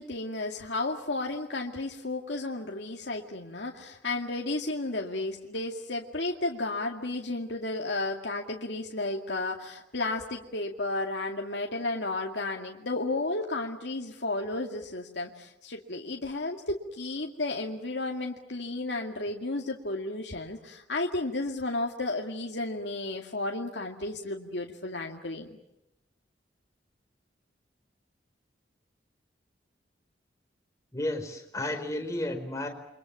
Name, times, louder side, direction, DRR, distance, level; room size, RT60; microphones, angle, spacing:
voice 1, 0.0-25.6, left 2 dB, 75° left, 1 dB, 2.2 m, -33 dB
voice 2, 30.9-32.7, left 1 dB, 20° left, 4 dB, 4.6 m, -32 dB
29.0 x 24.5 x 7.5 m, 0.87 s
head